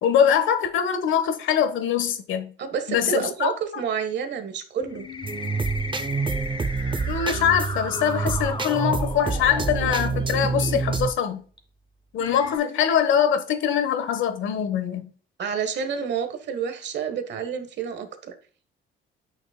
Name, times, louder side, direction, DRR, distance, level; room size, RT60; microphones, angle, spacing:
voice 1, 0.0-2.5 2.9-3.5 7.1-11.4 12.1-15.1, left 8 dB, 75° left, 1.2 m, -23 dB
voice 2, 2.6-5.1 15.4-18.3, right 7 dB, 60° right, 1.3 m, -29 dB
sound 1, 4.8-10.8 11.6-11.7 12.2-12.6, left 3 dB, 25° left, 1.9 m, -36 dB
sound 2, 5.2-11.1, right 4 dB, 25° right, 0.6 m, -27 dB
8.7 x 6.4 x 2.2 m
cardioid pair, 90°, 20 cm